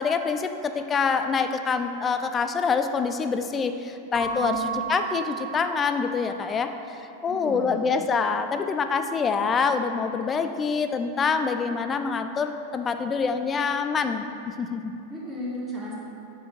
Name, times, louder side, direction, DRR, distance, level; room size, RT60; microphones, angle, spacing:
voice 1, 0.0-15.0, left 5 dB, 20° left, 8 dB, 0.4 m, -26 dB
Keyboard (musical) / Bell, 4.1-6.6, right 7 dB, 50° right, 1.0 m, -34 dB
voice 2, 7.4-7.8 15.1-16.0, equal, 20° right, -6 dB, 1.6 m, -34 dB
7.4 x 4.7 x 4.9 m, 2.7 s
figure-of-eight pair, 90°, 0 cm